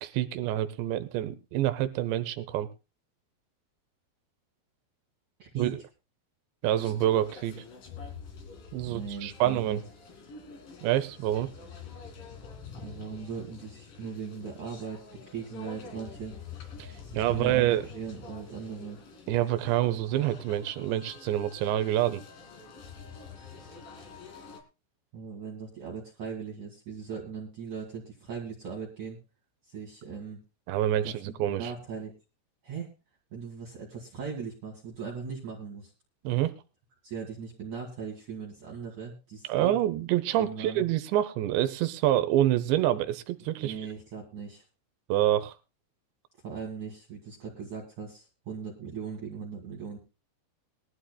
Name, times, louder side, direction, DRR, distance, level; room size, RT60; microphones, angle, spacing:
voice 1, 0.0-2.7 5.6-5.7 6.6-7.6 8.7-9.8 10.8-11.5 16.8-17.8 19.3-22.2 30.7-31.7 36.2-36.5 39.5-43.7 45.1-45.5, right 13 dB, 80° right, 11 dB, 2.6 m, -27 dB
voice 2, 5.4-5.8 8.9-9.8 12.8-16.4 17.0-19.0 25.1-29.2 29.6-30.4 31.0-32.1 32.6-32.9 33.3-35.9 37.0-39.8 40.4-40.8 43.6-44.6 46.4-50.0, right 6 dB, 50° right, -3 dB, 2.7 m, -39 dB
sound 1, 6.6-24.6, left 5 dB, 50° left, 3.6 m, -47 dB
21.5 x 13.0 x 2.3 m, 0.29 s
omnidirectional pair, 5.8 m